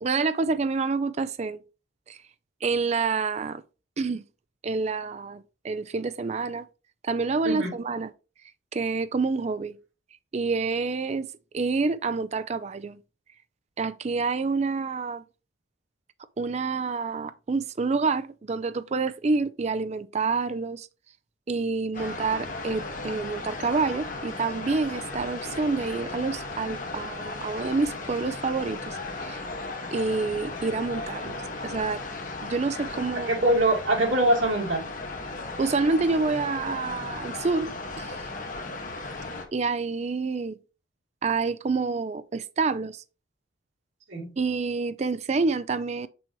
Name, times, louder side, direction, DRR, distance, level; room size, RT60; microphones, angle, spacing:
voice 1, 0.0-1.6 2.1-2.2 2.6-3.6 4.0-4.2 4.6-6.6 7.0-8.1 8.7-9.8 10.3-11.3 11.5-13.0 13.8-15.2 16.4-20.9 21.5-29.4 29.9-31.4 31.6-32.0 32.4-33.3 35.6-37.7 38.0-38.1 39.5-40.6 41.2-43.0 44.4-46.1, right 4 dB, 35° right, 0.4 m, -28 dB
sound 1, 21.9-39.5, left 3 dB, 45° left, 1.6 m, -36 dB
voice 2, 33.3-34.8 44.1-44.3, right 1 dB, 90° right, 2.3 m, -23 dB
6.1 x 6.0 x 3.1 m
head